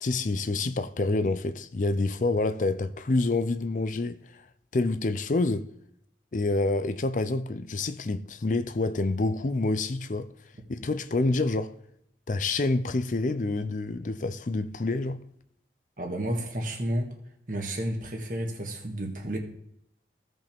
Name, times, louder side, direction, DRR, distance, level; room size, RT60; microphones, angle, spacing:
voice 1, 0.0-4.4 4.7-5.7 6.3-10.3 10.7-11.8 12.3-15.2, left 2 dB, 45° left, 0.5 m, -27 dB
voice 2, 16.0-17.1 17.5-19.4, right 1 dB, 50° right, 1.5 m, -31 dB
16.0 x 5.4 x 3.5 m
head